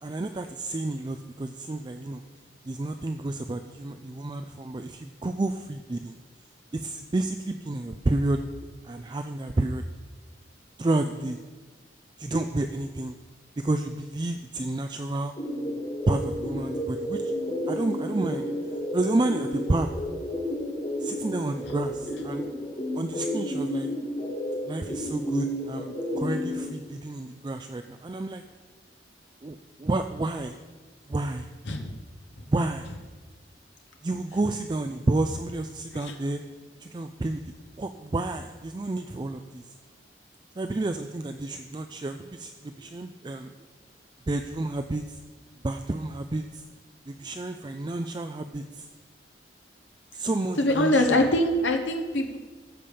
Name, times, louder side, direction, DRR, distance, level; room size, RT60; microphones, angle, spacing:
voice 1, 0.0-2.2 2.6-6.2 6.7-8.4 8.8-9.8 10.8-11.4 12.2-13.2 13.6-15.3 16.1-17.3 17.7-18.5 18.9-19.9 21.0-22.5 22.9-23.9 24.7-28.4 29.4-30.6 31.1-31.5 32.5-32.9 34.0-36.4 36.8-37.4 37.8-39.7 40.6-43.5 44.3-45.2 45.6-46.6 47.1-48.9 50.1-51.0, right 2 dB, 25° right, 7 dB, 0.4 m, -30 dB
sound 1, 15.4-26.6, equal, 35° left, 2.5 m, -31 dB
voice 2, 50.6-52.4, left 1 dB, 80° left, 3 dB, 1.0 m, -24 dB
14.0 x 5.1 x 6.9 m, 1.4 s
head